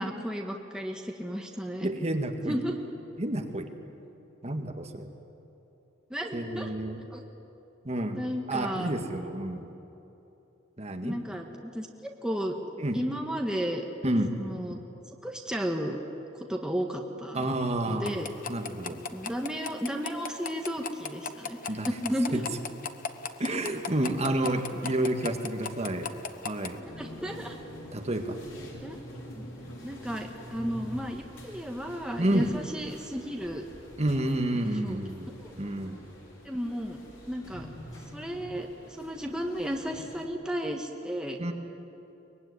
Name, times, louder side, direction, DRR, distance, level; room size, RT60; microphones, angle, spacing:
voice 1, 0.0-1.9 2.5-2.7 6.1-6.7 7.1-7.2 8.1-8.9 11.0-12.6 12.9-13.8 14.3-14.8 15.1-16.0 16.3-17.4 17.9-18.3 19.1-21.6 21.8-22.4 27.0-27.6 28.8-29.0 29.3-29.5 29.8-33.7 34.6-35.0 35.4-35.6 36.4-37.7 38.1-41.4, equal, 5° right, 1 dB, 1.5 m, -33 dB
voice 2, 1.8-2.6 3.2-3.7 4.4-5.1 6.3-7.0 7.8-8.2 8.5-9.7 10.8-11.2 12.8-13.0 14.0-14.3 17.3-18.1 18.5-19.0 21.7-21.9 22.3-22.5 23.4-26.1 26.4-26.8 27.9-28.4 32.2-32.5 34.0-35.3 35.6-36.0 41.4-41.5, right 1 dB, 35° right, 5 dB, 1.8 m, -29 dB
sound 1, 18.1-26.8, left 5 dB, 45° left, 1.1 m, -39 dB
sound 2, 26.8-40.3, equal, 80° left, 5.4 m, -46 dB
23.5 x 21.5 x 9.8 m, 3.0 s
head